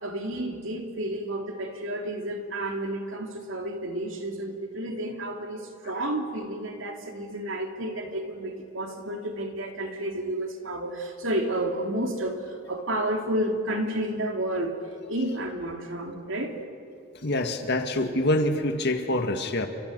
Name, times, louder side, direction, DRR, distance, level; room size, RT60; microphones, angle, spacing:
voice 1, 0.0-14.8 15.1-16.6, right 1 dB, 65° right, 3 dB, 3.2 m, -31 dB
voice 2, 17.2-19.7, left 1 dB, 55° left, 6 dB, 1.8 m, -25 dB
30.0 x 27.5 x 6.8 m, 2.5 s
head